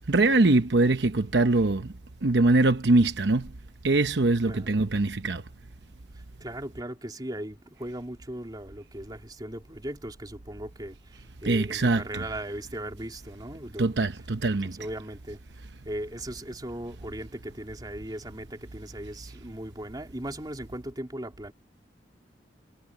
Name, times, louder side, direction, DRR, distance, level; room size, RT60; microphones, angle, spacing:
voice 1, 0.1-1.9 2.2-3.5 3.8-5.4 11.4-12.2 13.8-14.7, right 2 dB, 70° right, 0.9 m, -22 dB
voice 2, 4.4-4.9 6.4-14.0 14.8-15.4 15.8-21.5, right 1 dB, 25° right, 3.2 m, -38 dB
head